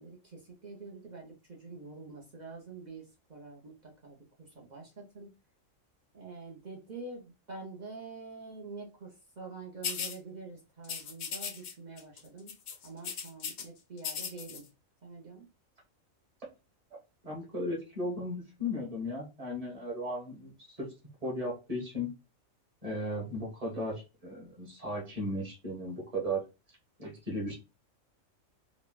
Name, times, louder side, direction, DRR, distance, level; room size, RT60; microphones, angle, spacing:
voice 1, 0.0-5.3 6.1-12.5 12.8-14.7 15.0-15.5, right 3 dB, 45° right, -1 dB, 0.6 m, -46 dB
sound 1, 9.8-10.2 10.8-11.7 12.0-12.2 12.5-13.6 14.0-14.6, left 7 dB, 65° left, 0.8 m, -37 dB
voice 2, 17.2-20.9 21.2-22.1 22.8-26.4 27.0-27.6, equal, 30° right, -2 dB, 1.2 m, -36 dB
3.9 x 2.1 x 2.2 m, 0.28 s
omnidirectional pair, 1.4 m